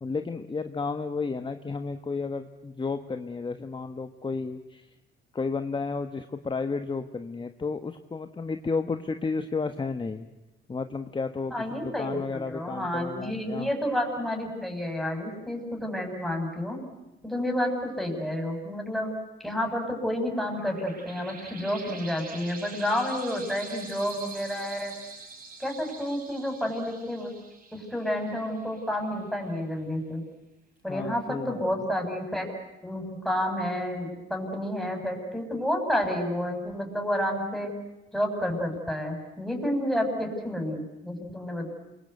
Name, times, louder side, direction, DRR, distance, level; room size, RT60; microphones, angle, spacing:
voice 1, 0.0-4.9 5.3-10.3 10.7-13.7 30.9-31.6, left 4 dB, 25° left, 8 dB, 1.2 m, -32 dB
voice 2, 11.5-16.8 17.2-19.2 19.4-24.9 25.6-27.3 27.7-30.2 30.8-32.5 32.8-37.7 38.1-41.7, equal, ahead, 2 dB, 7.3 m, -30 dB
sound 1, 20.1-29.2, right 4 dB, 45° right, 6.0 m, -45 dB
28.0 x 23.0 x 8.2 m, 1.0 s
cardioid pair, 90°, 20 cm